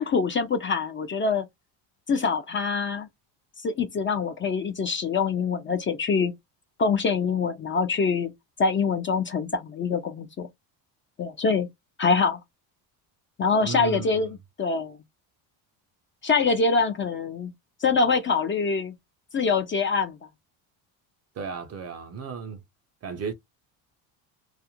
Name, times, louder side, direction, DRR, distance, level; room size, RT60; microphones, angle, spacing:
voice 1, 0.0-1.4 2.1-3.1 3.6-6.3 6.8-8.3 8.6-10.5 11.2-11.7 12.0-12.4 13.4-15.0 16.2-17.5 17.8-18.9 19.3-20.2, left 4 dB, 25° left, 0.4 m, -24 dB
voice 2, 13.6-14.3 21.4-22.6 23.0-23.3, right 5 dB, 35° right, 0.4 m, -34 dB
2.3 x 2.0 x 2.8 m
cardioid pair, 125°, 46 cm